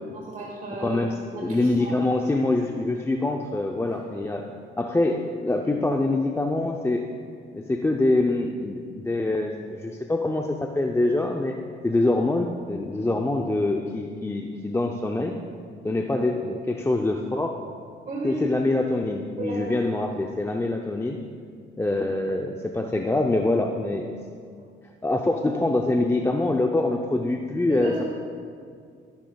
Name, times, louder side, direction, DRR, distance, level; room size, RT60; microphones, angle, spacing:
voice 1, 0.1-1.0 1.3-2.0 18.0-18.4 19.4-19.7 27.7-28.0, right 3 dB, 45° right, -3 dB, 1.5 m, -34 dB
voice 2, 0.7-4.5 4.8-7.0 7.5-11.6 11.8-15.4 15.8-17.6 18.2-21.2 21.8-24.1 25.0-27.9, left 2 dB, 15° left, 2 dB, 0.6 m, -25 dB
14.0 x 11.5 x 2.3 m, 2.1 s
cardioid pair, 90°, 20 cm